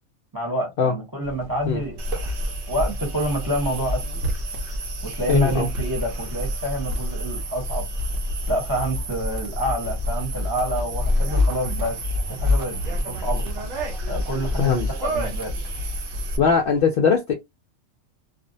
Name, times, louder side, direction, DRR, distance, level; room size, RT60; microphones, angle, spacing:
voice 1, 0.3-2.3 2.7-4.0 5.0-7.8 8.5-12.8 13.1-13.4 14.1-15.5, right 1 dB, 20° right, 0.8 m, -28 dB
sound 1, 1.2-16.8, equal, 85° right, 1.1 m, -35 dB
sound 2, 2.0-16.4, left 1 dB, 55° right, 0.7 m, -28 dB
voice 2, 5.3-5.7 14.6-14.9 16.4-17.3, left 6 dB, 60° left, 0.6 m, -20 dB
2.5 x 2.0 x 2.6 m
omnidirectional pair, 1.3 m